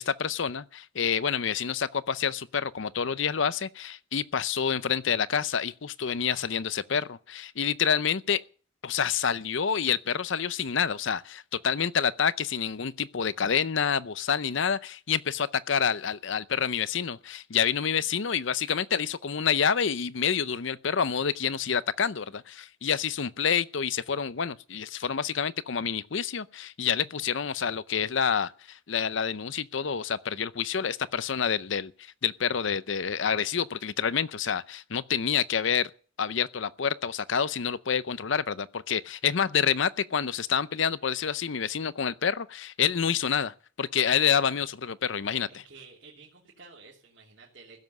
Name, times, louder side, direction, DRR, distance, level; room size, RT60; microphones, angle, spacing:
voice 1, 0.0-8.4 8.8-35.9 36.2-45.6, left 7 dB, 70° left, 0.6 m, -28 dB
voice 2, 45.5-47.8, right 4 dB, 60° right, 3.1 m, -51 dB
16.0 x 7.5 x 9.3 m
head